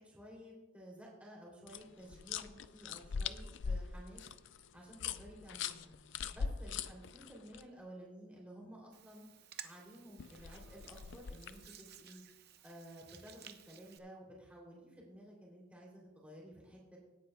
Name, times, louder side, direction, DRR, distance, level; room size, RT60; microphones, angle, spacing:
voice 1, 0.0-4.2 4.7-5.9 6.3-9.2 9.6-12.2 12.6-17.0, equal, 5° right, -3 dB, 2.9 m, -54 dB
sound 1, 1.7-7.6 10.2-11.7, left 6 dB, 60° left, 0.4 m, -42 dB
Hands, 8.9-14.0, right 9 dB, 50° right, 0.6 m, -55 dB
17.5 x 9.3 x 2.3 m, 1.0 s
head